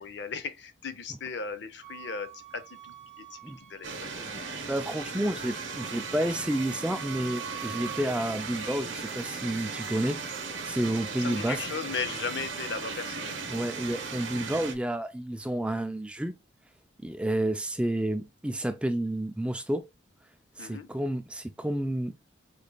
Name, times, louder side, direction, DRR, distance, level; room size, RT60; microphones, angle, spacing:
voice 1, 0.0-4.1 11.0-13.5 20.6-20.9, left 5 dB, 65° left, 0.6 m, -37 dB
Wind instrument woodwind instrument, 1.8-4.7 5.0-8.1, right 13 dB, 40° right, 0.8 m, -46 dB
sound 1, 3.8-14.7, right 4 dB, 80° right, 0.9 m, -37 dB
voice 2, 4.7-10.2 10.6-11.6 13.5-16.3 17.0-19.8 20.6-22.1, right 1 dB, 5° right, 0.4 m, -30 dB
5.0 x 4.1 x 2.3 m
head